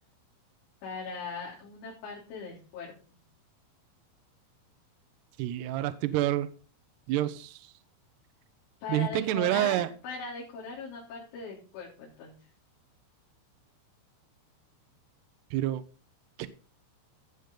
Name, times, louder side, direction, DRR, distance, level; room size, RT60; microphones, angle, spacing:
voice 1, 0.8-2.9 8.8-12.4, left 5 dB, 75° left, -5 dB, 5.8 m, -39 dB
voice 2, 5.4-6.5 7.1-7.6 8.9-9.9 15.5-15.8 16.4-16.5, right 14 dB, 75° right, 9 dB, 2.6 m, -28 dB
17.0 x 7.1 x 3.8 m, 0.36 s
omnidirectional pair, 5.6 m